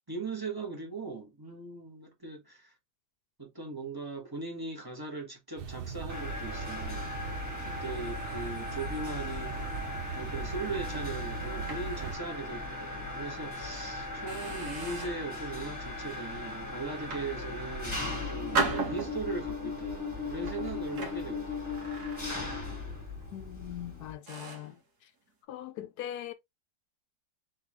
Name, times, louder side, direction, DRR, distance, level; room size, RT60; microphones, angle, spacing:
voice 1, 0.1-2.7 3.4-7.1 7.6-9.7 10.1-21.7, right 3 dB, 15° right, 1.0 m, -39 dB
sound 1, 5.6-12.2, right 7 dB, 85° right, 0.5 m, -40 dB
Mechanisms, 6.1-24.1, left 3 dB, 10° left, 1.6 m, -38 dB
sound 2, 10.7-12.5 12.9-13.1 13.6-13.8 14.3-15.3 15.9-16.2 16.9-17.9 18.5-19.5 20.3-22.7 22.9-23.2 23.8-23.9 24.3-24.8, right 4 dB, 70° right, 1.8 m, -37 dB
voice 2, 23.3-24.8 25.0-25.1 25.5-26.3, left 11 dB, 75° left, 1.0 m, -41 dB
4.2 x 3.4 x 3.0 m
omnidirectional pair, 1.8 m